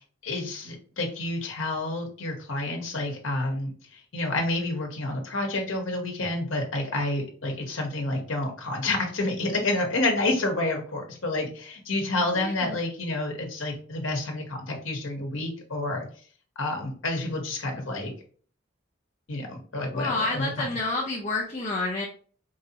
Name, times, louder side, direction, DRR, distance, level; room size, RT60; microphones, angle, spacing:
voice 1, 0.2-16.1 16.6-18.1 19.3-20.7, left 2 dB, 75° left, 2 dB, 1.1 m, -29 dB
voice 2, 12.4-12.8 19.9-22.1, left 2 dB, 35° left, -2 dB, 0.7 m, -29 dB
4.7 x 2.7 x 2.7 m, 0.43 s
head